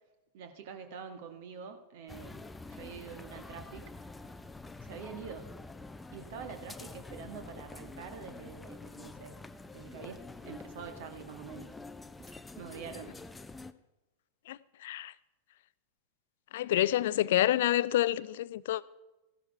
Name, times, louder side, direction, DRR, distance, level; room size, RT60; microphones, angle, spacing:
voice 1, 0.3-3.8 4.8-5.5 6.1-9.4 9.7-11.7 12.3-13.2, right 6 dB, 50° right, 1.6 m, -46 dB
sound 1, 2.1-13.7, left 3 dB, 10° left, 0.6 m, -47 dB
voice 2, 14.5-15.1 16.5-18.8, left 13 dB, 55° left, 0.4 m, -28 dB
15.0 x 11.5 x 4.5 m
figure-of-eight pair, 90°, 0 cm